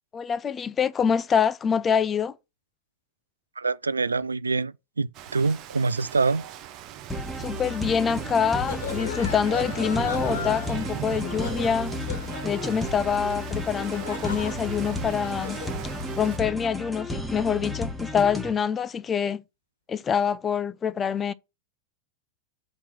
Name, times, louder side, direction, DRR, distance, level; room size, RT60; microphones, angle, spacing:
voice 1, 0.1-2.4 7.4-11.9 12.4-15.6 16.2-19.4 19.9-21.3, left 7 dB, 20° left, 0.5 m, -25 dB
voice 2, 3.6-6.4, right 4 dB, 75° right, 0.3 m, -25 dB
Rain, 5.1-16.4, right 12 dB, 40° right, 0.7 m, -38 dB
sound 1, 7.1-18.5, left 1 dB, ahead, 1.1 m, -33 dB
sound 2, 8.3-15.8, left 6 dB, 65° left, 1.3 m, -38 dB
5.3 x 4.3 x 6.0 m
figure-of-eight pair, 90°, 0 cm